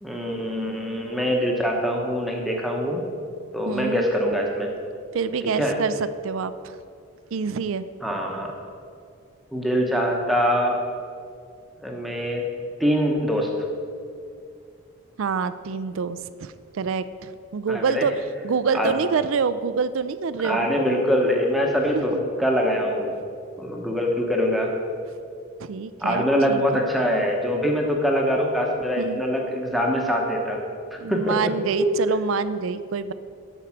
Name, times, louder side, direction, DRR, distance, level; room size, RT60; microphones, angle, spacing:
voice 1, 0.0-3.0 3.5-4.7 5.5-5.8 8.0-8.5 9.5-10.8 11.8-12.4 12.8-13.5 17.7-18.1 18.7-18.9 20.4-23.2 23.6-24.7 26.0-30.6 30.9-31.5 31.8-32.0, equal, ahead, 0 dB, 0.9 m, -23 dB
voice 2, 3.7-4.1 5.1-5.9 6.2-6.5 7.3-7.8 15.2-18.1 18.4-20.7 21.9-22.3 25.6-26.6 29.0-29.2 31.0-33.1, right 5 dB, 65° right, 14 dB, 0.4 m, -26 dB
10.5 x 4.6 x 7.2 m, 2.3 s
head